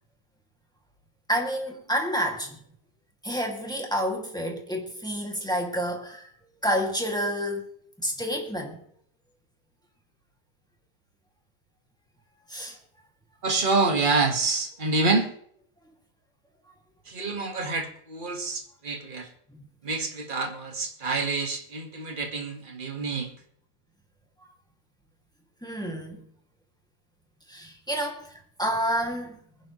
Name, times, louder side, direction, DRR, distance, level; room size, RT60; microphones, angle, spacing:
voice 1, 1.3-2.6 3.2-6.3 6.6-7.6 8.0-8.8 12.5-12.8 19.5-19.6 25.6-26.2 27.5-29.4, equal, ahead, 0 dB, 1.7 m, -29 dB
voice 2, 13.4-15.3 17.0-19.3 19.8-23.3, right 3 dB, 25° right, 4 dB, 1.1 m, -27 dB
24.5 x 10.5 x 3.2 m, 0.65 s
omnidirectional pair, 3.4 m